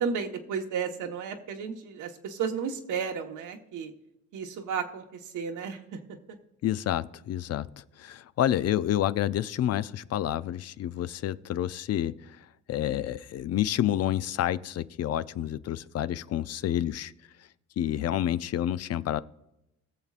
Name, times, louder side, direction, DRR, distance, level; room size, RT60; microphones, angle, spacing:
voice 1, 0.0-3.9 4.3-5.1 5.3-5.8, right 6 dB, 85° right, 4 dB, 1.3 m, -33 dB
voice 2, 6.6-12.2 12.7-17.1 17.8-19.2, left 11 dB, 55° left, 15 dB, 0.5 m, -29 dB
20.5 x 7.1 x 2.5 m, 0.89 s
cardioid pair, 90°, 30 cm